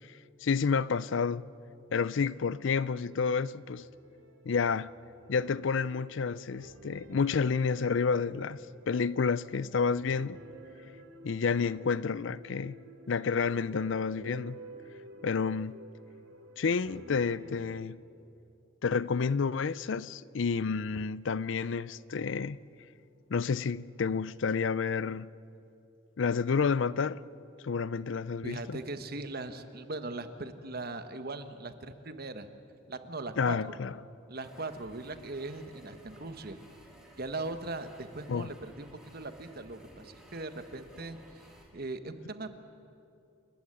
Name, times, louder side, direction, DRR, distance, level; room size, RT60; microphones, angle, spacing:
voice 1, 0.4-1.5 1.9-3.8 4.5-4.9 5.3-8.6 8.9-10.4 11.2-12.8 13.1-14.6 15.2-15.8 16.6-18.0 18.8-22.6 23.3-25.3 26.2-27.2 27.6-28.8 33.4-33.9 38.3-38.5, left 5 dB, 65° left, 0.5 m, -30 dB
sound 1, 3.6-17.8, right 1 dB, 90° right, 2.5 m, -51 dB
voice 2, 28.4-32.5 32.9-33.8 34.3-36.6 37.2-42.6, right 2 dB, 50° right, 1.4 m, -40 dB
sound 2, 34.4-41.6, equal, 5° right, 3.5 m, -56 dB
28.5 x 14.5 x 9.9 m
head